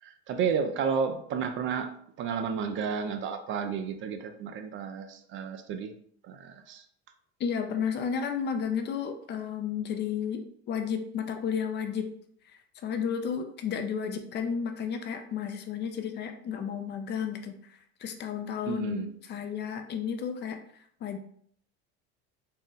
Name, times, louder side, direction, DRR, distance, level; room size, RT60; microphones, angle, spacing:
voice 1, 0.0-1.9 2.2-5.9 6.2-6.8 18.7-19.1, right 6 dB, 40° right, 7 dB, 0.4 m, -32 dB
voice 2, 7.4-12.1 12.4-21.2, left 7 dB, 35° left, 6 dB, 0.4 m, -33 dB
3.7 x 2.0 x 3.9 m, 0.64 s
supercardioid pair, 120°, 32 cm